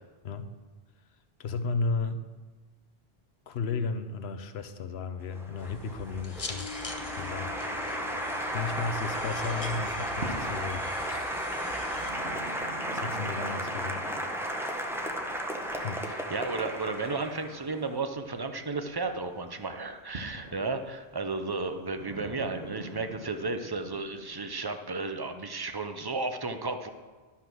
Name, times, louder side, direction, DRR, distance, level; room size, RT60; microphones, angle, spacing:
voice 1, 1.4-2.2 3.5-6.9 7.2-8.2 8.5-11.3 12.9-14.0 14.3-14.5 15.8-16.0, left 4 dB, 80° left, 9 dB, 1.0 m, -34 dB
Applause, 5.3-17.8, equal, 5° right, 0.8 m, -34 dB
sound 1, 5.6-12.1, left 3 dB, 35° left, 0.9 m, -43 dB
sound 2, 7.1-9.2 9.5-24.4, right 2 dB, 75° right, 1.5 m, -46 dB
voice 2, 16.1-26.9, right 3 dB, 30° right, 7 dB, 0.5 m, -33 dB
12.0 x 5.7 x 6.1 m, 1.3 s
omnidirectional pair, 1.1 m